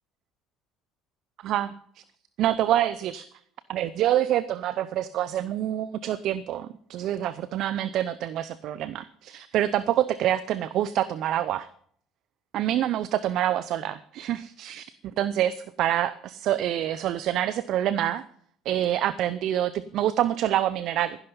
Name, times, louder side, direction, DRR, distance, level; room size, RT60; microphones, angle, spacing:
voice 1, 2.4-3.3 3.7-11.7 12.5-14.9 15.2-18.2 18.7-21.2, right 12 dB, 60° right, 16 dB, 0.6 m, -26 dB
16.0 x 11.0 x 5.5 m, 0.63 s
hypercardioid pair, 65°, 0 cm